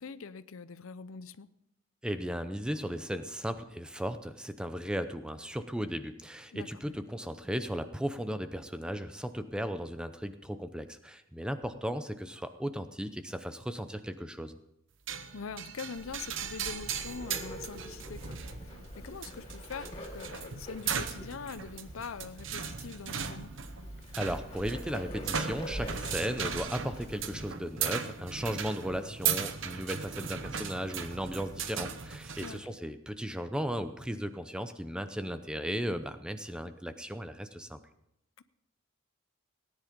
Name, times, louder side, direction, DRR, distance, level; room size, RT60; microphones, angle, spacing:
voice 1, 0.0-1.5 6.5-7.0 15.3-18.4 18.6-23.5 32.4-32.8 38.4-38.5, left 5 dB, 80° left, 15 dB, 0.6 m, -43 dB
voice 2, 2.0-14.6 24.1-37.8, equal, 5° right, 10 dB, 0.6 m, -36 dB
sound 1, 15.1-32.6, right 7 dB, 65° right, 0.9 m, -37 dB
Bird, 15.9-27.5, equal, 30° left, 3.8 m, -45 dB
18.5 x 10.5 x 5.2 m, 0.80 s
head